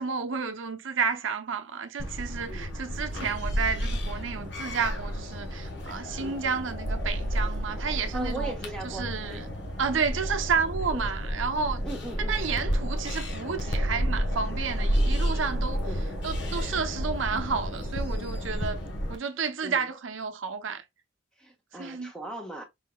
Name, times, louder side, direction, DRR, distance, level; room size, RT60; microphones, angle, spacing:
voice 1, 0.0-8.5 8.8-9.5 9.8-11.8 12.3-15.9 16.2-18.8 19.1-20.8 21.7-22.1, right 5 dB, 70° right, 0.7 m, -31 dB
sound 1, 2.0-19.2, equal, 55° left, 1.1 m, -31 dB
voice 2, 8.0-9.4 10.9-11.1 11.8-12.4 15.9-16.1 19.6-19.9 21.4-22.6, right 2 dB, 5° left, 1.2 m, -39 dB
5.1 x 3.7 x 2.2 m
head